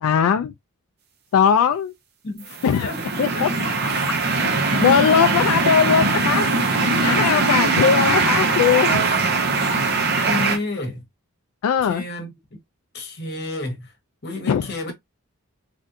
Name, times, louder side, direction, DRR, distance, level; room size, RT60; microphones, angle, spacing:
voice 1, 0.0-0.5 1.3-1.9 2.6-2.9 3.2-3.5 4.4-4.5 4.8-6.5 7.0-9.0 11.6-12.0 14.5-14.6, left 7 dB, 75° left, 0.3 m, -19 dB
voice 2, 2.2-3.8 4.1-4.2 5.1-5.2 6.5-7.1 10.2-11.1 11.8-12.6 12.9-13.9 14.2-14.9, left 2 dB, 50° left, 1.1 m, -32 dB
sound 1, 2.5-10.6, right 3 dB, 45° right, 0.7 m, -21 dB
3.3 x 2.5 x 2.6 m
head